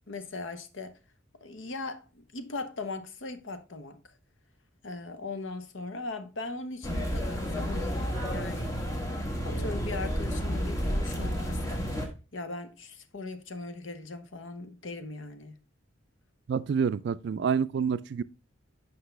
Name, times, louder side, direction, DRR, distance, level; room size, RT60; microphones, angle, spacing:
voice 1, 0.1-0.9 1.4-4.0 4.8-8.8 9.5-11.9 12.3-15.6, left 3 dB, 75° left, 0.8 m, -39 dB
sound 1, 6.8-12.1, equal, 15° left, 1.1 m, -31 dB
voice 2, 16.5-18.2, right 6 dB, 60° right, 0.3 m, -28 dB
7.9 x 5.5 x 3.3 m
head